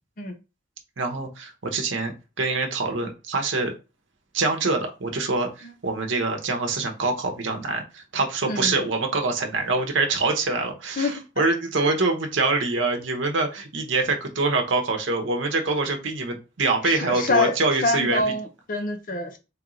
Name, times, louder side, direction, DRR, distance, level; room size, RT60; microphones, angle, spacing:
voice 1, 1.0-2.1 2.4-3.7 4.3-18.2, right 3 dB, 70° right, 3 dB, 0.8 m, -25 dB
voice 2, 16.8-17.5 17.8-19.4, left 2 dB, 45° left, 8 dB, 0.6 m, -25 dB
3.1 x 3.0 x 3.7 m, 0.29 s
head